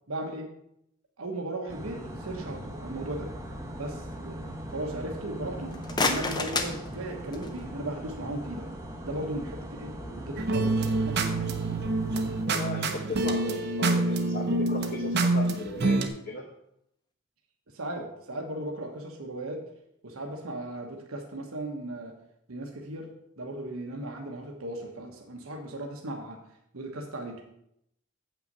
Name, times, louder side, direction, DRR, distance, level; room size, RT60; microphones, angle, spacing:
voice 1, 0.1-0.5 1.2-3.3 3.8-5.8 6.0-8.7 9.0-11.4 17.7-19.6 20.0-22.1 22.5-23.1 23.4-26.4 26.7-27.4, right 1 dB, 85° right, 1 dB, 1.2 m, -37 dB
sound 1, 1.7-12.5, right 1 dB, 15° right, 0.9 m, -40 dB
sound 2, 5.6-7.7, left 3 dB, 20° left, 0.6 m, -30 dB
sound 3, 10.4-16.1, right 2 dB, 50° right, 0.8 m, -27 dB
voice 2, 12.4-16.5, left 2 dB, 40° left, 0 dB, 0.9 m, -37 dB
7.9 x 5.8 x 5.4 m, 0.77 s
head